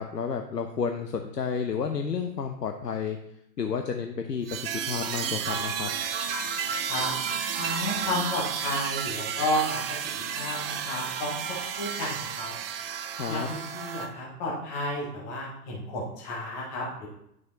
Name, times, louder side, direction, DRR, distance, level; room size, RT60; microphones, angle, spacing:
voice 1, 0.0-3.2 3.6-5.9 13.1-13.5, left 6 dB, 80° left, 5 dB, 0.7 m, -31 dB
sound 1, 4.5-14.1, right 7 dB, 35° right, 0.6 m, -32 dB
voice 2, 7.5-11.4 11.8-12.5 13.3-17.1, left 1 dB, 5° left, -4 dB, 0.4 m, -32 dB
9.2 x 6.1 x 3.0 m, 0.76 s
figure-of-eight pair, 105°, 48 cm